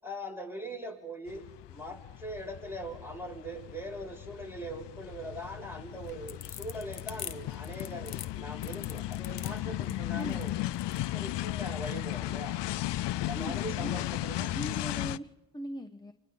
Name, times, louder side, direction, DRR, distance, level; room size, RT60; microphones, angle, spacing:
voice 1, 0.0-10.6 11.1-12.6 13.2-14.5, equal, 5° right, 1 dB, 6.9 m, -41 dB
sound 1, 1.3-15.2, left 15 dB, 85° left, 0.6 m, -36 dB
sound 2, 5.9-11.1, left 9 dB, 60° left, 1.4 m, -43 dB
voice 2, 9.9-10.5 13.4-13.9 14.5-16.1, equal, 10° left, 7 dB, 1.0 m, -40 dB
29.5 x 25.0 x 4.0 m, 1.1 s
cardioid pair, 70°, 41 cm